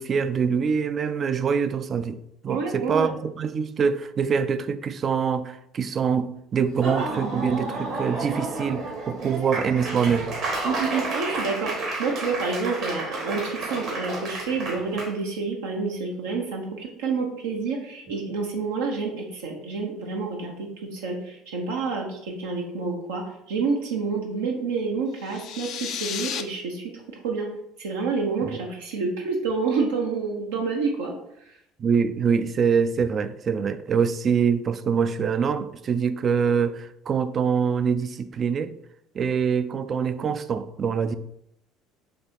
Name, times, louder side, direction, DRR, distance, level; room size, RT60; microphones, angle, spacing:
voice 1, 0.0-2.2 2.4-10.3 28.4-28.5 31.8-38.7 39.1-41.1, right 6 dB, 40° right, 0.3 m, -24 dB
voice 2, 2.5-3.1 9.2-9.3 10.6-27.5 27.8-31.1 31.5-31.6, right 4 dB, 70° right, 0.6 m, -28 dB
Laughter / Applause, 6.7-15.1, right 2 dB, 55° right, 1.3 m, -31 dB
sound 1, 25.2-26.4, left 8 dB, 50° left, 0.3 m, -33 dB
5.2 x 2.9 x 2.8 m
figure-of-eight pair, 60°, 0 cm